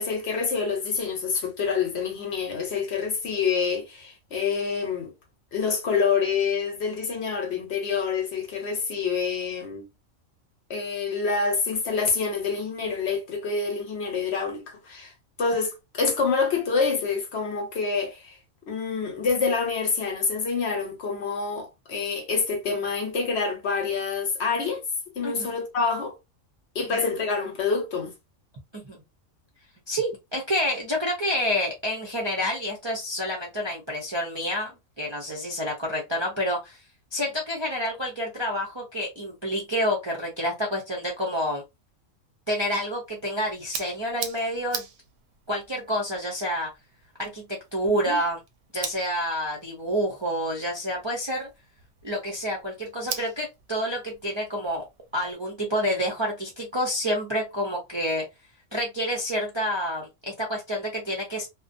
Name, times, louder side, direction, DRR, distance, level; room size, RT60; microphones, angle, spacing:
voice 1, 0.0-5.1 5.5-9.8 10.7-15.1 15.4-18.4 18.7-24.8 25.2-26.1 26.7-28.1 47.9-48.2, left 5 dB, 60° left, 0.9 m, -27 dB
voice 2, 29.9-34.7 35.0-36.8 37.1-41.6 42.5-44.8 45.5-46.7 47.2-48.4 48.7-51.5 52.0-54.8 55.1-58.2 58.7-61.5, equal, 35° right, 0.4 m, -28 dB
sound 1, 43.0-55.3, right 7 dB, 70° right, 0.9 m, -42 dB
2.4 x 2.2 x 2.5 m
omnidirectional pair, 1.4 m